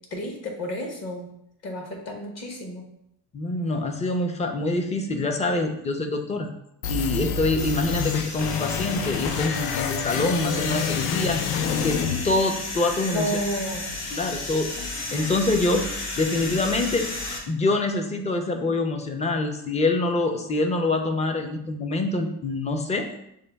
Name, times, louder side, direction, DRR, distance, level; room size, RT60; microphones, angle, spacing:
voice 1, 0.1-1.3 1.6-2.8 13.1-13.9, equal, 40° left, 2 dB, 1.1 m, -32 dB
voice 2, 3.3-6.5 6.9-11.4 11.7-12.0 12.2-13.3 14.1-14.7 15.1-15.9 16.2-17.1 17.5-23.1, left 2 dB, 20° left, 5 dB, 0.4 m, -25 dB
sound 1, 6.8-12.8, left 6 dB, 75° left, 0.5 m, -28 dB
sound 2, 7.6-17.4, left 2 dB, 90° left, 1.0 m, -34 dB
6.4 x 2.2 x 3.4 m, 0.77 s
cardioid pair, 130°, 38 cm